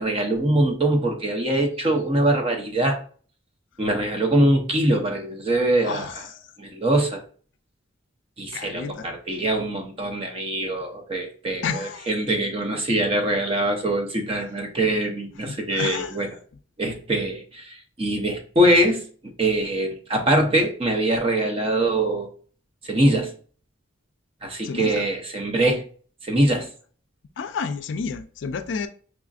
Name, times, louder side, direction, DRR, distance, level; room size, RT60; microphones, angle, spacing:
voice 1, 0.0-3.0 3.8-6.1 6.6-7.2 8.4-16.3 16.8-19.0 19.4-22.3 22.9-23.3 24.4-25.8 26.2-26.7, right 1 dB, 30° right, 0.6 m, -23 dB
voice 2, 8.5-9.1 11.6-12.1 15.4-16.2 24.6-25.0 27.4-28.9, left 5 dB, 65° left, 0.3 m, -30 dB
4.9 x 2.5 x 2.4 m
head